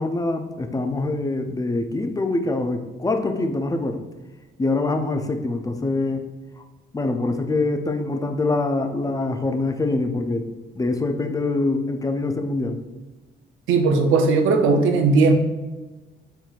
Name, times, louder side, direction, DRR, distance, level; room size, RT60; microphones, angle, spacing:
voice 1, 0.0-4.0 4.6-6.2 6.6-6.7 6.9-10.5 10.8-12.8, left 2 dB, 20° left, 6 dB, 0.4 m, -24 dB
voice 2, 13.7-15.3, right 4 dB, 85° right, 4 dB, 0.6 m, -17 dB
4.4 x 3.8 x 2.4 m, 1.2 s
cardioid pair, 90°, 20 cm